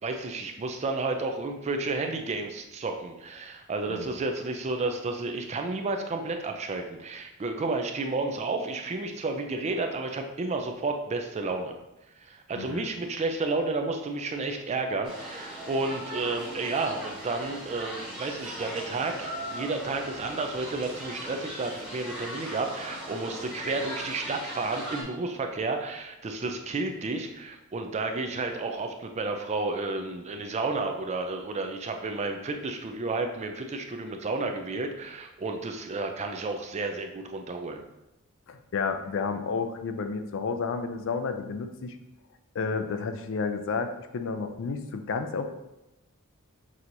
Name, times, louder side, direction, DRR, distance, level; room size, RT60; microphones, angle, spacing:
voice 1, 0.0-11.7 12.2-37.8, right 3 dB, 30° right, 5 dB, 0.4 m, -31 dB
voice 2, 12.6-12.9 38.5-42.0 42.5-45.5, left 5 dB, 65° left, 8 dB, 0.4 m, -31 dB
sound 1, 15.0-25.0, equal, 5° right, 1.1 m, -39 dB
6.1 x 2.8 x 2.6 m, 0.93 s
head